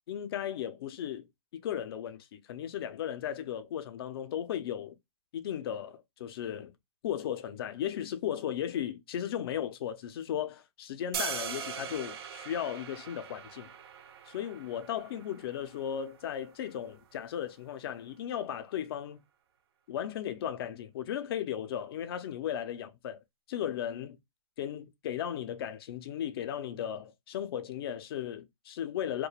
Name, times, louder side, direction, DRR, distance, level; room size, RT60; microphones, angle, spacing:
voice 1, 0.1-1.3 1.5-4.9 5.3-6.7 7.0-13.7 14.3-19.2 19.9-23.2 23.5-24.2 24.6-29.3, left 10 dB, 40° left, 0.4 m, -36 dB
sound 1, 11.1-17.2, right 7 dB, 40° right, 0.4 m, -41 dB
2.3 x 2.2 x 2.9 m
hypercardioid pair, 155°, 19 cm